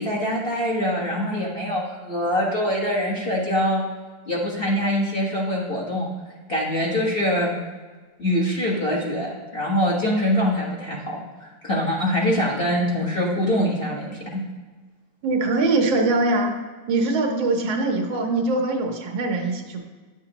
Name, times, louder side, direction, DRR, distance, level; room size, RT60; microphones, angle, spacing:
voice 1, 0.0-3.8 4.3-6.1 6.5-7.6 8.2-14.4, equal, 30° left, -5 dB, 1.6 m, -24 dB
voice 2, 15.2-16.5 16.9-19.8, right 2 dB, 80° right, 3 dB, 1.7 m, -22 dB
10.5 x 7.0 x 2.9 m, 1.4 s
omnidirectional pair, 2.1 m